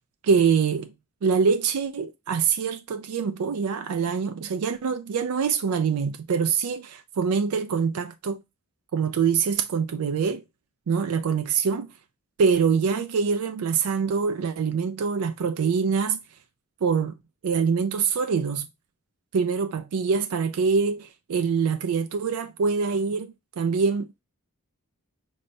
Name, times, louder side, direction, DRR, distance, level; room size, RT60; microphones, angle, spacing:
voice 1, 0.2-0.9 1.2-8.4 8.9-10.4 10.9-11.9 12.4-16.2 16.8-17.1 17.4-18.7 19.3-24.2, right 5 dB, 80° right, 0.4 m, -24 dB
5.2 x 3.2 x 2.6 m
head